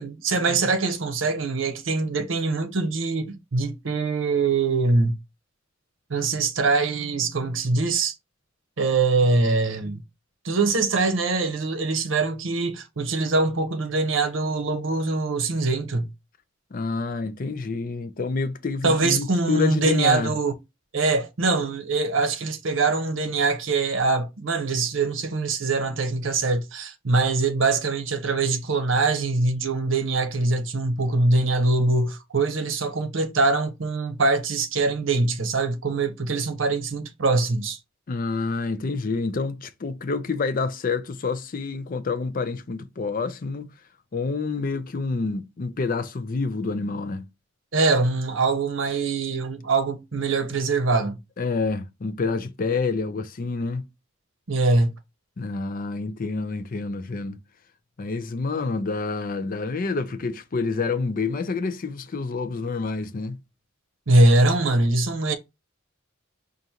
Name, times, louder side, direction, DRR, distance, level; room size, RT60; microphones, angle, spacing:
voice 1, 0.0-5.1 6.1-8.1 8.8-10.0 10.4-16.1 18.8-20.5 20.9-37.8 47.7-51.2 54.5-54.9 64.1-65.3, right 3 dB, 70° right, 0.8 m, -23 dB
voice 2, 16.7-20.3 38.1-43.7 44.1-47.3 51.4-53.8 55.4-57.4 58.0-63.4, left 4 dB, 45° left, 0.5 m, -28 dB
5.0 x 2.5 x 2.8 m
head